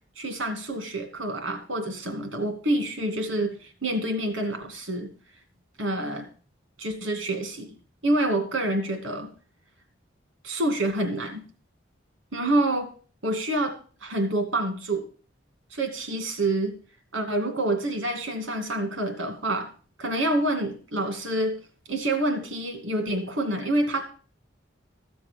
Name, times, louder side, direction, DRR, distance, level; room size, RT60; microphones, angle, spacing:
voice 1, 0.2-5.1 5.8-6.3 6.8-7.7 8.0-9.3 10.4-11.4 12.3-12.9 13.2-15.1 15.7-16.7 17.1-19.7 20.0-21.6 21.9-24.0, right 1 dB, 85° right, 6 dB, 2.3 m, -27 dB
14.0 x 7.0 x 5.2 m, 0.38 s
head